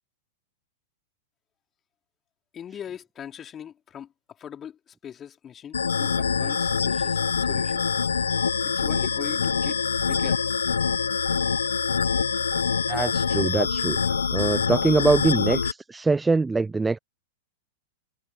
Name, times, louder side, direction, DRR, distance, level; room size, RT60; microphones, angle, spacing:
voice 1, 2.5-4.1 4.4-7.8 8.6-10.5, left 9 dB, 25° left, 4.9 m, -40 dB
sound 1, 5.7-15.7, left 6 dB, 75° left, 0.9 m, -25 dB
voice 2, 12.9-17.0, right 3 dB, 10° right, 0.7 m, -24 dB
figure-of-eight pair, 95°, 0 cm